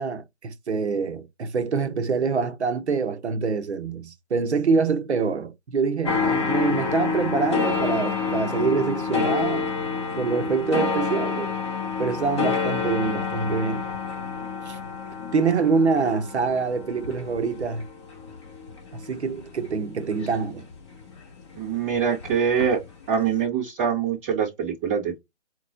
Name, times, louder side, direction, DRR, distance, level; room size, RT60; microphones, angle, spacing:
voice 1, 0.0-9.7 10.2-11.5 12.0-13.9 14.6-14.8 15.3-17.8 19.1-20.7, right 5 dB, 70° right, 0.9 m, -25 dB
sound 1, 6.1-21.2 21.5-22.9 23.2-23.3, left 5 dB, 25° left, 1.1 m, -28 dB
voice 2, 21.5-22.8 23.1-25.2, right 7 dB, 10° right, 1.5 m, -24 dB
4.4 x 3.0 x 2.6 m
hypercardioid pair, 170°, 34 cm